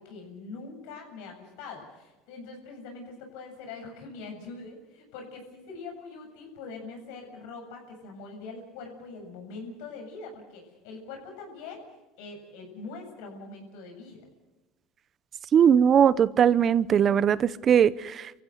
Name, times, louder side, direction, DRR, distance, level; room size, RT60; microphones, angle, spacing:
voice 1, 0.0-11.9 12.2-14.3, left 4 dB, 75° left, 3 dB, 7.7 m, -43 dB
voice 2, 15.5-18.3, right 8 dB, 40° right, 18 dB, 0.8 m, -20 dB
27.0 x 15.5 x 8.0 m, 1.1 s
supercardioid pair, 95°, 0 cm